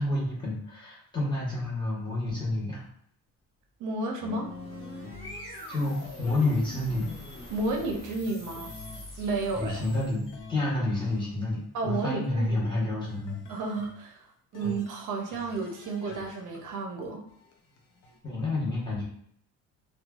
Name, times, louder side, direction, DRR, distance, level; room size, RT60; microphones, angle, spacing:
voice 1, 0.0-2.8 5.7-7.1 9.5-13.4 14.6-14.7 18.2-19.0, left 2 dB, 15° left, -7 dB, 0.9 m, -29 dB
voice 2, 3.8-4.5 7.5-8.7 9.2-9.8 11.7-12.6 13.5-14.3 14.5-17.2, right 3 dB, 65° right, 2 dB, 0.5 m, -32 dB
sound 1, 4.2-7.5 7.8-9.1 9.8-10.6 11.0-11.9 13.0-14.0 14.5-16.7 17.0-18.2, left 3 dB, 70° left, 0.6 m, -47 dB
sound 2, 4.2-10.6, left 1 dB, 35° left, 1.3 m, -44 dB
3.0 x 2.2 x 2.3 m, 0.66 s
cardioid pair, 160°, 33 cm